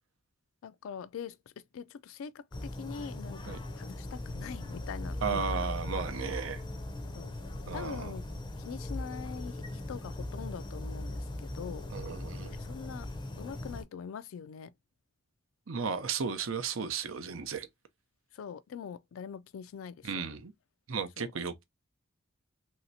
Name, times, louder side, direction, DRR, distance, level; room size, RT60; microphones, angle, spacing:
voice 1, 0.6-1.4 1.7-5.6 6.3-6.4 7.1-7.3 7.7-8.2 8.6-11.9 12.6-13.1 13.4-14.7 18.3-20.3 21.2-21.3, left 7 dB, 85° left, 0.3 m, -43 dB
sound 1, 2.5-13.8, left 1 dB, 20° left, 0.5 m, -39 dB
voice 2, 5.2-6.6 7.7-8.1 11.9-12.6 15.7-17.7 20.0-20.5 20.9-21.6, right 5 dB, 85° right, 0.6 m, -34 dB
3.1 x 2.7 x 2.6 m
head